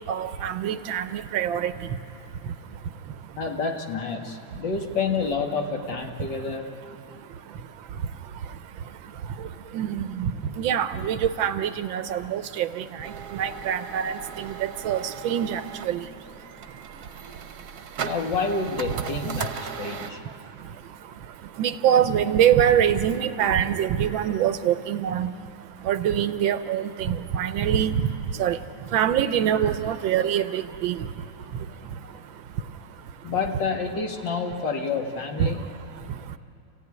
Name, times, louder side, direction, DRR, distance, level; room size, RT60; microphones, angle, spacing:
voice 1, 0.1-1.7 9.7-10.3 10.6-12.8 13.3-14.5 14.8-16.0 21.6-25.3 25.8-28.0 28.4-28.6 28.9-31.0 35.4-35.5, right 9 dB, 75° right, 11 dB, 1.4 m, -24 dB
voice 2, 3.4-6.7 18.0-20.2 33.2-35.7, left 4 dB, 60° left, 2 dB, 2.3 m, -28 dB
sound 1, 13.0-20.1, right 7 dB, 55° right, 1.3 m, -37 dB
29.0 x 16.0 x 9.6 m, 2.7 s
omnidirectional pair, 2.2 m